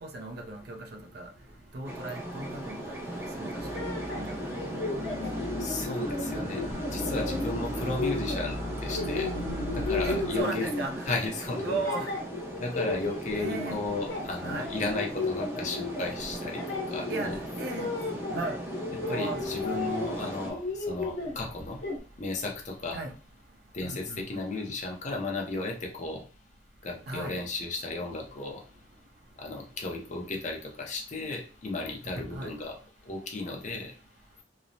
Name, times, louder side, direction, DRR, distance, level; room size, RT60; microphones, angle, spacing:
voice 1, 0.0-0.8 1.1-1.3 1.7-4.4 4.8-4.9 10.0-11.1 11.6-12.1 13.3-13.8 14.4-14.7 17.1-17.9 18.3-18.6 19.0-19.4 22.9-23.1 23.8-24.4 27.1-27.3 32.3-32.5, right 2 dB, 55° right, 4 dB, 0.5 m, -36 dB
sound 1, 1.8-20.5, right 1 dB, 15° right, 0.6 m, -38 dB
sound 2, 3.6-11.1 11.5-13.7 14.0-18.4 18.7-20.2 20.4-22.0, left 2 dB, 60° left, 1.0 m, -34 dB
sound 3, 3.6-10.4, left 1 dB, 35° right, 1.0 m, -38 dB
voice 2, 5.6-8.6 8.8-10.7 11.1-11.8 12.6-16.6 16.9-17.4 19.1-21.8 22.2-23.0 23.7-26.2 26.8-28.6 29.4-32.8 33.0-33.9, left 3 dB, 40° left, 1 dB, 0.6 m, -34 dB
3.0 x 2.0 x 2.6 m, 0.37 s
head